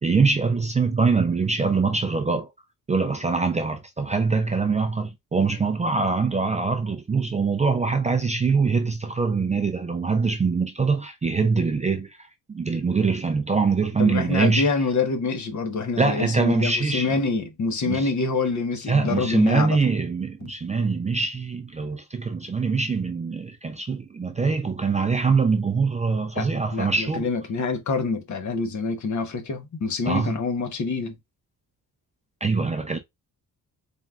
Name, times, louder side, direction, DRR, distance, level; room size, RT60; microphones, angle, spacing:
voice 1, 0.0-2.5 2.9-12.2 12.5-14.7 16.0-17.1 17.8-18.1 18.9-27.3 30.1-30.4 32.4-33.0, right 4 dB, 20° right, 0.4 m, -23 dB
voice 2, 14.0-19.9 20.4-20.5 26.3-31.2, left 4 dB, 55° left, 1.0 m, -26 dB
4.2 x 3.5 x 2.3 m
wide cardioid pair, 150°, 36 cm